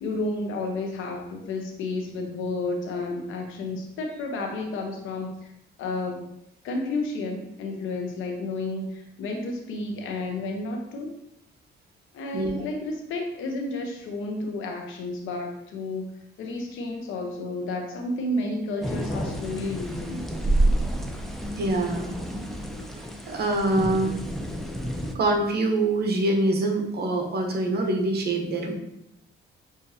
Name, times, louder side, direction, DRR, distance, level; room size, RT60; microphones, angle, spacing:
voice 1, 0.0-5.5 5.8-6.2 6.6-11.1 12.1-16.1 16.4-20.3, left 2 dB, 85° left, 3 dB, 0.8 m, -31 dB
sound 1, 18.8-25.1, right 1 dB, ahead, 0.5 m, -29 dB
voice 2, 21.6-22.2 23.3-24.2 25.1-28.7, right 2 dB, 55° right, 2 dB, 0.9 m, -24 dB
6.4 x 2.5 x 2.7 m, 0.81 s
cardioid pair, 90°, 20 cm